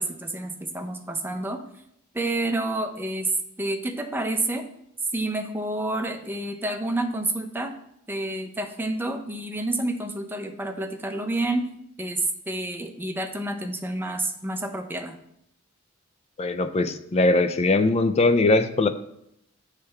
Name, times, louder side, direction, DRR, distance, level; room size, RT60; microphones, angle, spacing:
voice 1, 0.0-1.6 2.1-3.3 3.6-4.7 5.1-7.7 8.1-11.7 12.0-15.2, right 2 dB, 10° right, 4 dB, 0.6 m, -29 dB
voice 2, 16.4-18.9, left 2 dB, 30° left, 10 dB, 0.4 m, -21 dB
6.6 x 3.3 x 5.7 m, 0.75 s
head